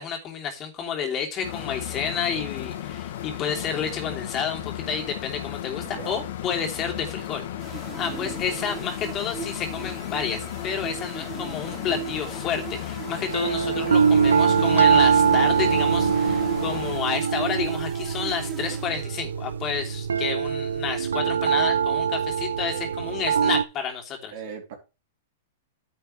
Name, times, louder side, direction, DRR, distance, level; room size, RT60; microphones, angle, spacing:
voice 1, 0.0-24.3, left 7 dB, 35° left, 3.0 m, -30 dB
sound 1, 1.4-17.0, left 11 dB, 65° left, 2.0 m, -35 dB
voice 2, 5.9-6.2 8.0-8.2 24.3-24.8, right 7 dB, 60° right, 3.2 m, -38 dB
sound 2, 7.6-19.5, right 7 dB, 15° right, 2.1 m, -39 dB
sound 3, 13.2-23.6, right 7 dB, 85° right, 0.6 m, -23 dB
10.0 x 8.0 x 3.3 m
hypercardioid pair, 115°, 0 cm